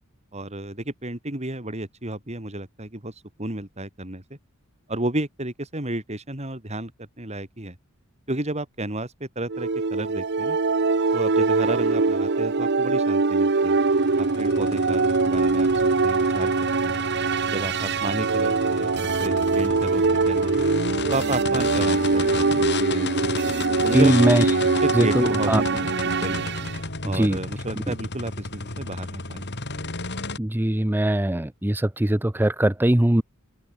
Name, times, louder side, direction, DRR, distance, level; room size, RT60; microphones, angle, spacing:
voice 1, 0.3-3.1 3.4-4.4 4.9-7.8 8.3-10.6 11.1-13.8 14.2-17.0 17.5-20.5 21.1-23.3 23.8-24.5 24.8-25.9 26.2-26.5 27.0-29.9, right 1 dB, 30° right, 3.9 m, -32 dB
sound 1, 9.5-26.8, right 4 dB, 55° right, 0.9 m, -23 dB
sound 2, 13.8-30.4, left 3 dB, 55° left, 4.3 m, -33 dB
voice 2, 23.9-24.5 24.9-25.6 27.0-27.4 30.4-33.2, right 1 dB, 10° right, 0.6 m, -21 dB
open air
head